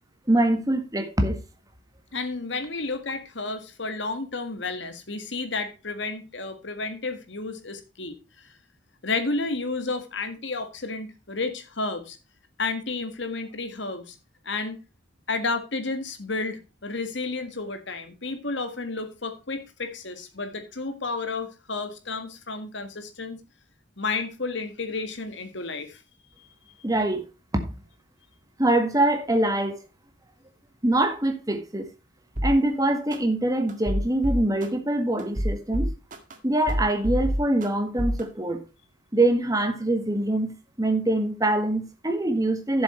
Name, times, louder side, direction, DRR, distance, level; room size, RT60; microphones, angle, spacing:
voice 1, 0.3-1.4 26.8-27.2 28.6-29.8 30.8-31.8 32.4-35.9 36.4-38.6 39.1-40.5 40.8-42.8, right 1 dB, 20° right, 1.6 m, -24 dB
voice 2, 2.1-8.2 9.0-12.2 12.6-14.2 14.5-14.8 15.3-23.4 24.0-26.0 26.4-26.8, left 3 dB, 65° left, 1.8 m, -31 dB
sound 1, 32.4-32.5 33.1-33.2 33.7-34.7 35.2-36.3 36.7-37.7 38.0-38.2, equal, 40° right, 1.9 m, -26 dB
11.5 x 7.3 x 4.4 m
head